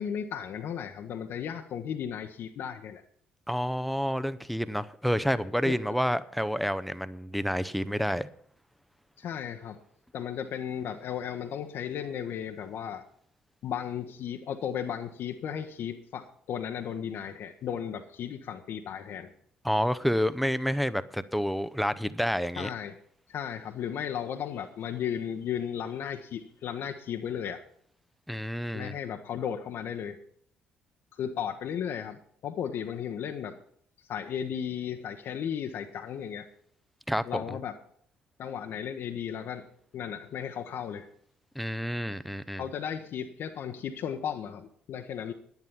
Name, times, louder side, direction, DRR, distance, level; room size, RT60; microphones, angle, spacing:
voice 1, 0.0-3.0 5.6-5.7 9.2-9.8 10.1-13.0 13.6-19.3 22.6-23.0 23.3-27.6 28.7-30.2 31.2-33.6 34.1-36.5 37.2-37.8 38.4-39.6 39.9-41.1 42.6-45.3, left 8 dB, 55° left, 4 dB, 0.9 m, -35 dB
voice 2, 3.5-8.3 19.6-22.7 28.3-29.0 37.1-37.4 41.6-42.6, equal, ahead, 15 dB, 0.7 m, -29 dB
10.5 x 10.5 x 5.7 m, 0.62 s
figure-of-eight pair, 45°, 5 cm